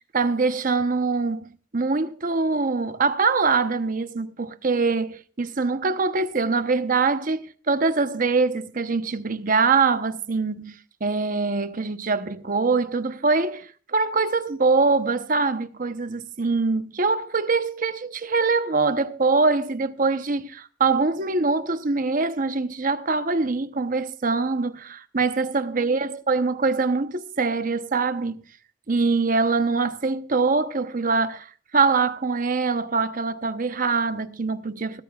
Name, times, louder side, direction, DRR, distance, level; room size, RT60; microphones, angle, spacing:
voice 1, 0.1-28.4 28.9-31.5 31.7-35.0, right 4 dB, 50° right, 0.9 m, -23 dB
21.0 x 13.0 x 2.4 m
head